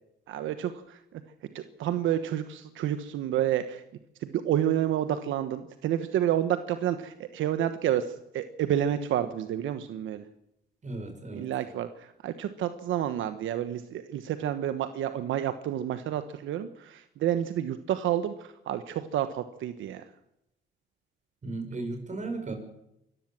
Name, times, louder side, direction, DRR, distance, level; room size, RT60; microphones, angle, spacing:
voice 1, 0.3-1.2 1.5-3.8 4.2-10.2 11.3-20.0, right 11 dB, 80° right, 10 dB, 1.2 m, -29 dB
voice 2, 10.8-11.5 21.4-22.5, right 2 dB, 35° right, 6 dB, 6.2 m, -35 dB
24.5 x 14.0 x 7.5 m, 0.82 s
cardioid pair, 90°, 20 cm